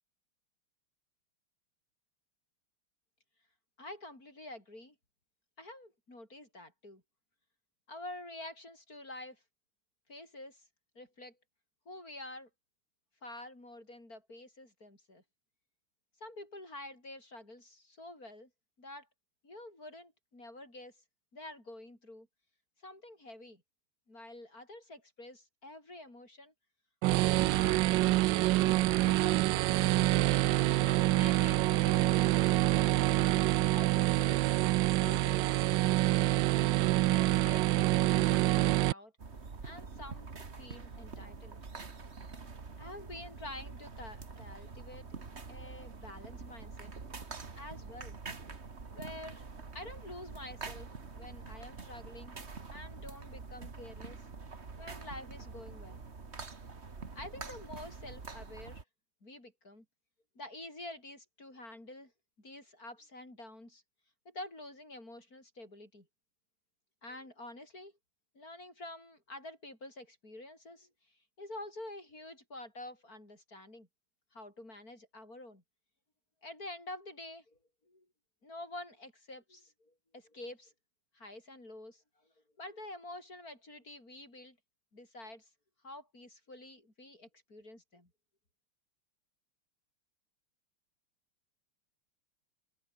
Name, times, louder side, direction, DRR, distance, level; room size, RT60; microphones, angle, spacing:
voice 1, 3.8-4.9 5.6-7.0 7.9-9.4 10.1-10.7 10.9-11.4 11.9-12.5 13.2-15.2 16.2-18.5 18.8-19.1 19.4-21.0 21.3-22.3 22.8-23.6 24.1-26.5 27.6-28.2 28.6-30.2 30.8-33.2 33.7-34.5 35.0-35.7 36.5-37.9 38.3-39.1 39.6-41.6 42.8-45.1 45.5-46.9 47.6-48.2 48.9-49.5 49.7-50.9 51.2-52.4 52.7-54.3 54.8-56.0 57.1-58.8 59.2-59.8 60.4-62.1 62.4-63.8 64.3-66.1 67.0-67.9 68.3-70.9 71.4-73.9 74.3-75.6 76.4-78.1 78.4-80.7 81.1-84.6 84.9-85.5 85.8-88.1, left 1 dB, 40° left, 7.9 m, -48 dB
sound 1, 27.0-38.9, right 17 dB, 75° right, 1.1 m, -26 dB
sound 2, 39.2-58.8, right 4 dB, 30° right, 2.1 m, -46 dB
open air
omnidirectional pair, 2.4 m